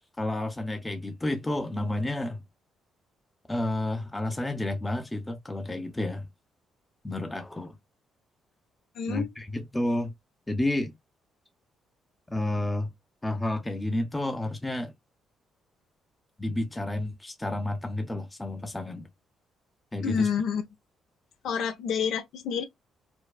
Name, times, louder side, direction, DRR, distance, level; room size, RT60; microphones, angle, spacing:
voice 1, 0.2-2.4 3.5-6.3 7.0-7.8 9.1-10.1 10.5-10.9 12.3-12.9 13.2-14.9 16.4-19.1 19.9-20.3, left 1 dB, 15° left, 0.7 m, -30 dB
voice 2, 8.9-9.3 20.0-20.6 21.4-22.6, left 7 dB, 75° left, 0.9 m, -28 dB
4.5 x 2.2 x 2.3 m
cardioid pair, 90°, 0 cm